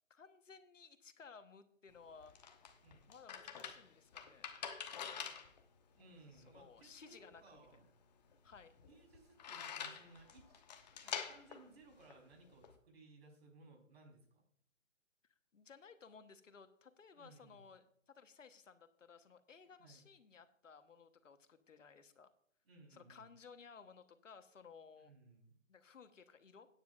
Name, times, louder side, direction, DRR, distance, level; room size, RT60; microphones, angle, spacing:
voice 1, 0.1-2.3 3.1-4.5 6.3-7.8 8.4-8.8 10.9-11.0 15.5-22.3 22.9-25.1 25.7-26.7, left 5 dB, 75° left, 10 dB, 1.3 m, -59 dB
sound 1, 1.9-12.8, left 7 dB, 35° left, 1.0 m, -48 dB
voice 2, 5.9-7.9 8.8-10.6 11.0-14.4 17.1-17.6 19.8-20.1 22.6-23.3 25.0-25.5, right 3 dB, 55° right, 1 dB, 4.1 m, -62 dB
15.0 x 9.6 x 2.5 m, 0.64 s
hypercardioid pair, 155°, 38 cm